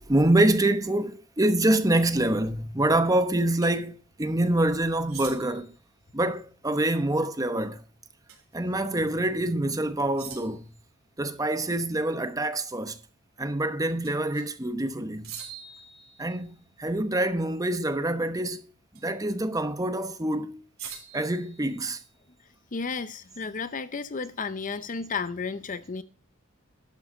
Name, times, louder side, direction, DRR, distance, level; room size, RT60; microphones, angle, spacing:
voice 1, 0.1-5.7 6.1-7.8 8.5-10.7 11.2-13.0 13.4-15.3 16.2-18.7 19.0-20.6 21.1-22.0, right 1 dB, 15° right, 0.9 m, -26 dB
sound 1, 3.6-3.8 5.1-5.7 8.3-8.5 8.9-9.0 10.2-10.8 14.0-14.6 15.2-16.6 18.9-19.3 20.8-22.2, right 7 dB, 65° right, 3.8 m, -44 dB
voice 2, 22.7-26.0, left 4 dB, 35° left, 0.6 m, -33 dB
12.0 x 8.0 x 3.7 m
head